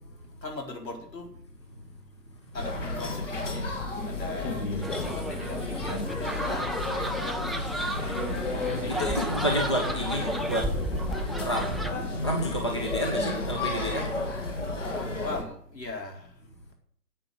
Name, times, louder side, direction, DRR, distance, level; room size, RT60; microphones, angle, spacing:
voice 1, 0.4-1.3 2.5-3.8 4.0-4.9 5.1-7.6 8.7-10.1 14.8-16.1, left 2 dB, 80° left, 2 dB, 4.4 m, -39 dB
sound 1, 2.5-15.4, left 2 dB, 45° left, 2.8 m, -32 dB
sound 2, 4.8-11.9, right 1 dB, ahead, 0.4 m, -34 dB
voice 2, 8.2-14.9, equal, 15° left, 0 dB, 1.1 m, -31 dB
9.9 x 8.5 x 9.2 m, 0.64 s
hypercardioid pair, 175°, 50 cm